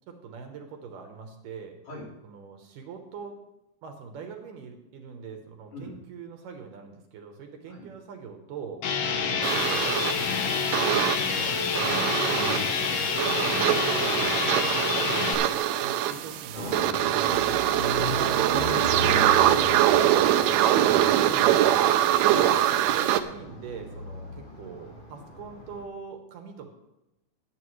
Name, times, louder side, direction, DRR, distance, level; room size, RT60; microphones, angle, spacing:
voice 1, 0.1-1.8 2.2-3.4 3.8-8.8 9.3-10.5 11.0-12.1 12.5-18.3 21.2-21.8 22.3-26.7, right 6 dB, 70° right, 4 dB, 2.4 m, -43 dB
sound 1, 8.8-15.3, left 6 dB, 90° left, 1.3 m, -27 dB
sound 2, 9.4-23.2, right 12 dB, 85° right, 2.5 m, -24 dB
voice 2, 12.3-12.7 14.0-14.5 17.8-18.0 18.6-19.7, left 2 dB, 70° left, -7 dB, 6.2 m, -42 dB
sound 3, 16.5-25.8, left 1 dB, 55° left, 0.5 m, -37 dB
20.0 x 8.1 x 3.2 m, 0.94 s
omnidirectional pair, 4.3 m